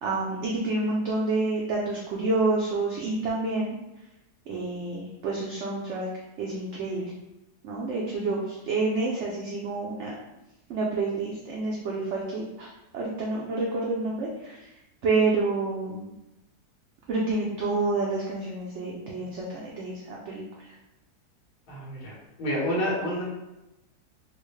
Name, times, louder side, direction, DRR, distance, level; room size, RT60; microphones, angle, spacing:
voice 1, 0.0-3.7 4.5-6.1 6.4-7.1 7.6-10.1 10.7-12.7 12.9-14.6 15.0-16.1 17.1-20.4, right 3 dB, 70° right, -3 dB, 0.7 m, -28 dB
voice 2, 21.7-22.1 22.4-23.2, equal, 70° left, -6 dB, 1.7 m, -28 dB
4.3 x 2.1 x 3.1 m, 0.94 s
omnidirectional pair, 1.8 m